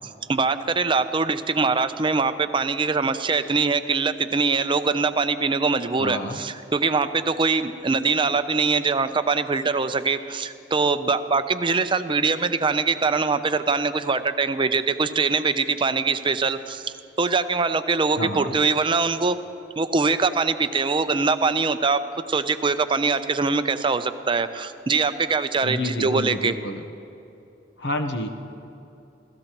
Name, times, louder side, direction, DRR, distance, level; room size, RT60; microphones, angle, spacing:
voice 1, 0.3-19.4 19.8-22.0 22.3-26.5, right 4 dB, 30° right, 11 dB, 0.5 m, -23 dB
voice 2, 6.0-6.4 18.2-18.5 25.6-26.8 27.8-28.3, left 1 dB, 65° left, 5 dB, 0.9 m, -29 dB
26.5 x 16.5 x 3.0 m, 2.8 s
head